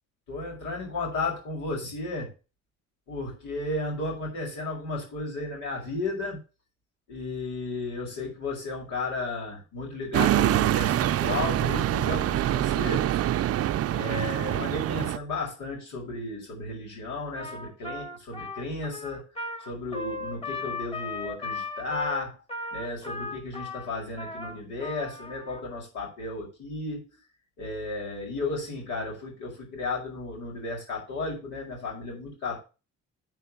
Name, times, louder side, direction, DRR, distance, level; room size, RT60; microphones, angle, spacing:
voice 1, 0.3-2.3 3.1-6.4 7.1-13.2 13.9-19.3 19.6-22.4 22.7-27.0 27.6-32.6, left 2 dB, 90° left, -2 dB, 5.7 m, -34 dB
sound 1, 10.1-15.2, right 12 dB, 55° right, 0.5 m, -25 dB
Trumpet, 17.3-25.6, left 3 dB, 20° left, 1.8 m, -37 dB
9.3 x 4.6 x 7.1 m, 0.31 s
cardioid pair, 90°, 30 cm